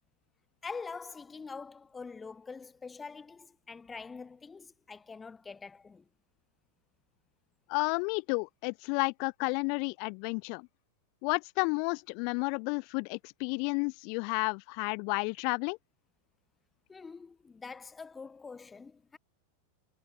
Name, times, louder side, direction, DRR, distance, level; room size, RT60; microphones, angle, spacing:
voice 1, 0.6-6.0 16.9-19.2, left 4 dB, 15° left, 3.1 m, -45 dB
voice 2, 7.7-10.7 11.2-15.8, left 40 dB or more, 45° left, 1.4 m, -31 dB
figure-of-eight pair, 90°, 0 cm